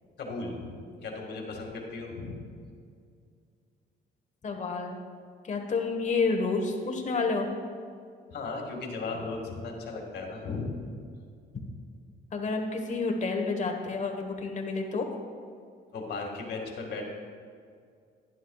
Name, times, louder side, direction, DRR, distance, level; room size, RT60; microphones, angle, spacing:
voice 1, 0.2-2.4 8.3-10.7 15.9-17.1, left 3 dB, 60° left, 0 dB, 2.0 m, -36 dB
voice 2, 4.4-5.0 5.4-7.5 12.3-15.1, left 4 dB, 40° left, 3 dB, 1.3 m, -29 dB
11.5 x 11.0 x 2.4 m, 2.3 s
cardioid pair, 115°, 19 cm